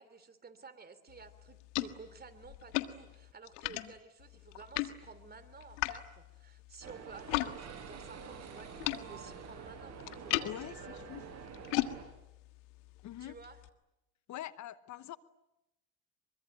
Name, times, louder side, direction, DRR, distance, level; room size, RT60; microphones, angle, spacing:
voice 1, 0.0-11.0 13.2-13.6, right 5 dB, 25° right, 11 dB, 3.2 m, -53 dB
sound 1, 1.1-7.5 7.8-13.7, left 17 dB, 85° left, 1.6 m, -39 dB
sound 2, 6.8-12.0, right 6 dB, 45° right, 7.7 m, -48 dB
voice 2, 10.4-11.2 13.0-13.4 14.3-15.2, left 13 dB, 50° left, 14 dB, 1.0 m, -44 dB
24.0 x 23.5 x 9.2 m, 0.95 s
supercardioid pair, 95°, 36 cm